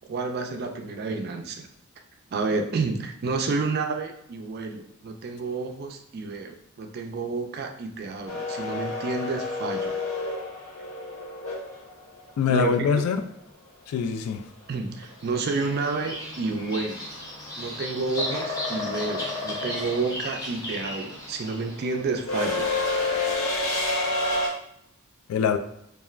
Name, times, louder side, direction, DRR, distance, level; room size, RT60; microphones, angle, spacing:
voice 1, 0.1-1.7 2.3-9.9 12.5-13.1 14.7-17.0 17.6-22.7, right 3 dB, 50° right, 5 dB, 0.3 m, -30 dB
sound 1, 8.3-12.3 14.7-14.8 16.1-16.4 16.7-24.5, left 2 dB, 70° left, 0.7 m, -29 dB
voice 2, 12.4-13.2 13.9-14.4 25.3-25.6, left 6 dB, 90° left, 12 dB, 0.3 m, -23 dB
Bird vocalization bird call bird song, 15.2-21.8, left 2 dB, 15° left, 0.6 m, -34 dB
3.1 x 2.3 x 2.3 m, 0.77 s
head